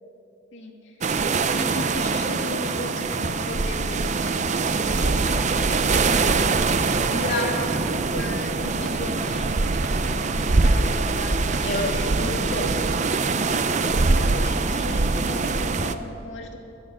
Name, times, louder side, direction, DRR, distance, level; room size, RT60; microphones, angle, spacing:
voice 1, 0.5-1.0 1.5-4.1 4.7-6.5 7.3-7.9 8.1-9.6 10.0-12.1 14.0-16.6, left 1 dB, 75° left, 0 dB, 2.1 m, -36 dB
sound 1, 1.0-15.9, right 3 dB, 35° right, 0.5 m, -23 dB
sound 2, 2.8-13.0, right 1 dB, 70° right, 1.9 m, -41 dB
voice 2, 7.1-7.6 11.6-13.2, left 2 dB, 60° left, -3 dB, 1.7 m, -29 dB
18.0 x 11.5 x 6.2 m, 2.8 s
head